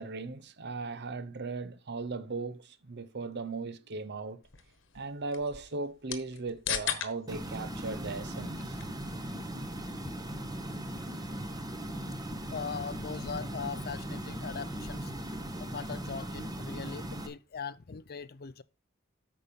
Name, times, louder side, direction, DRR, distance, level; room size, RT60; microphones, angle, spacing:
voice 1, 0.0-4.4 4.9-8.8, right 3 dB, 55° right, 0.8 m, -37 dB
sound 1, 4.4-15.1, left 8 dB, 65° left, 1.2 m, -43 dB
sound 2, 7.3-17.3, right 1 dB, 20° right, 1.2 m, -38 dB
voice 2, 12.5-18.6, left 6 dB, 50° left, 0.6 m, -40 dB
8.9 x 5.4 x 5.3 m
head